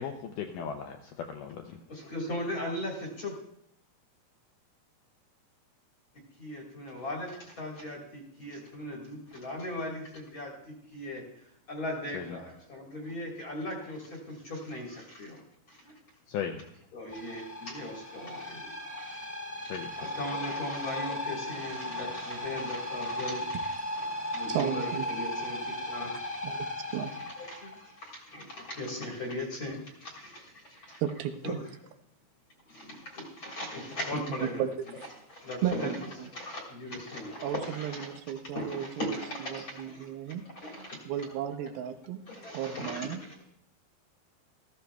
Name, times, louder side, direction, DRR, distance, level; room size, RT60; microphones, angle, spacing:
voice 1, 0.0-1.8 12.1-12.4 16.3-16.6 19.7-20.1, left 7 dB, 80° left, 4 dB, 1.9 m, -37 dB
voice 2, 1.9-3.3 6.4-11.2 11.7-15.4 15.7-15.9 16.9-19.1 19.6-24.1 24.3-25.6 25.9-26.4 27.1-30.5 31.4-31.6 32.7-34.6 35.3-38.1 38.4-40.1 40.4-41.0 42.3-43.4, left 1 dB, 45° left, -1 dB, 1.8 m, -38 dB
sound 1, 17.1-27.9, left 1 dB, 10° left, 0.8 m, -36 dB
voice 3, 24.5-25.1 26.4-26.7 26.9-27.1 31.0-31.6 34.6-35.1 35.6-36.3 37.4-39.1 39.5-40.5 41.1-42.2 42.5-43.2, right 9 dB, 80° right, 8 dB, 2.5 m, -34 dB
16.5 x 14.0 x 2.3 m, 0.74 s
omnidirectional pair, 4.4 m